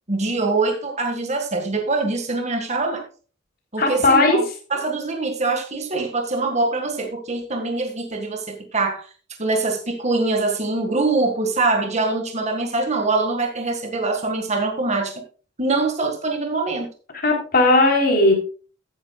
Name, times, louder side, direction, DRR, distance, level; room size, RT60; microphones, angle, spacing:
voice 1, 0.1-3.0 3.7-4.4 4.7-9.1 9.4-15.1 15.6-16.9, right 3 dB, 35° right, 4 dB, 1.7 m, -23 dB
voice 2, 3.8-4.4 17.2-18.3, left 2 dB, 50° left, 1 dB, 3.5 m, -16 dB
13.5 x 10.0 x 2.3 m, 0.37 s
head